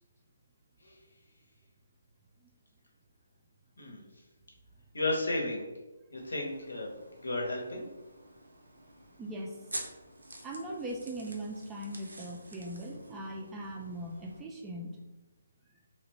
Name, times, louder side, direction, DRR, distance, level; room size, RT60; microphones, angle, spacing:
voice 1, 4.9-5.6 6.1-6.9 7.2-7.9, left 2 dB, 75° left, -1 dB, 0.7 m, -33 dB
sound 1, 6.2-14.4, right 1 dB, 85° right, 0.5 m, -48 dB
voice 2, 9.2-9.6 10.4-15.0, right 1 dB, 15° right, -1 dB, 0.3 m, -40 dB
2.9 x 2.1 x 2.9 m, 1.1 s
figure-of-eight pair, 145°, 0 cm